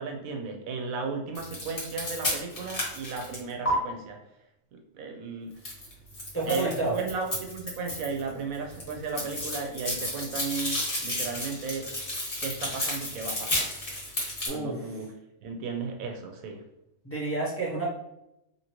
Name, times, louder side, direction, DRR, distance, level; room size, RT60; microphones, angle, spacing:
voice 1, 0.0-4.2 4.7-5.5 6.4-11.9 12.4-13.7 14.5-15.1 15.4-16.6, right 4 dB, 90° right, 3 dB, 1.1 m, -35 dB
sound 1, 1.3-3.7 5.6-8.3 8.5-14.5, left 1 dB, 45° left, 1.3 m, -32 dB
voice 2, 6.3-7.0 14.5-14.8 17.0-17.9, right 2 dB, 15° left, -5 dB, 0.5 m, -29 dB
2.9 x 2.8 x 2.9 m, 0.84 s
omnidirectional pair, 1.4 m